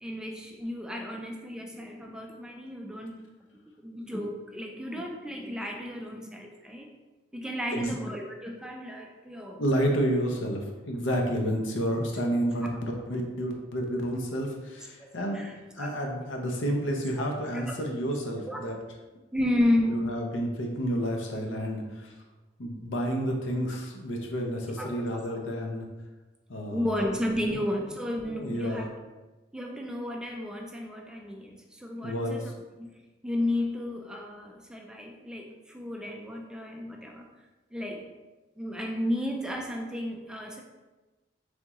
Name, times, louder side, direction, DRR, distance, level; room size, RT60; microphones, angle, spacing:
voice 1, 0.0-3.2 3.8-6.9 7.3-9.6 15.0-15.1 15.3-15.9 17.5-17.7 18.5-18.6 19.3-20.2 24.8-25.1 26.7-28.9 29.5-32.5 32.8-32.9 33.2-37.3 37.7-38.1 38.6-40.6, left 1 dB, 5° right, 1 dB, 0.3 m, -32 dB
voice 2, 9.6-15.4 15.7-18.8 19.9-22.1 22.6-25.9 26.5-27.0 27.4-27.6 28.2-28.9 32.0-32.5, equal, 90° left, 2 dB, 0.7 m, -30 dB
3.5 x 3.0 x 3.6 m, 1.2 s
head